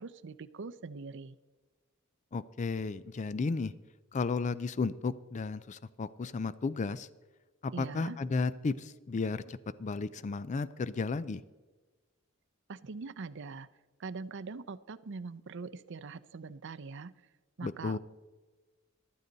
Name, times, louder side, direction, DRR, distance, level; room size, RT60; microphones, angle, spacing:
voice 1, 0.0-1.4 7.7-8.2 12.7-13.7 14.0-17.1 17.6-18.0, right 4 dB, 60° right, 14 dB, 0.6 m, -42 dB
voice 2, 2.3-3.7 4.1-7.1 7.6-11.4 17.6-18.0, left 4 dB, 35° left, 16 dB, 0.4 m, -33 dB
14.5 x 12.5 x 4.0 m, 1.3 s
head